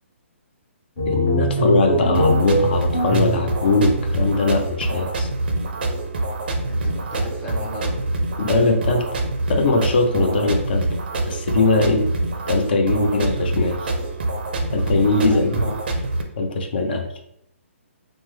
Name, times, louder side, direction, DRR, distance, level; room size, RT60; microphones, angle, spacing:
sound 1, 1.0-4.6, right 1 dB, 30° left, 1.0 m, -23 dB
voice 1, 1.1-5.3 8.4-9.0 9.5-10.8 11.3-12.1 12.5-13.8 14.7-15.6 16.4-17.0, left 3 dB, 45° left, 4 dB, 0.5 m, -20 dB
sound 2, 2.1-16.2, right 2 dB, 45° right, 0.4 m, -25 dB
voice 2, 6.6-8.0 11.7-12.1 15.2-15.8, equal, 10° left, -5 dB, 0.7 m, -35 dB
3.3 x 2.1 x 3.1 m, 0.75 s
hypercardioid pair, 170°, 7 cm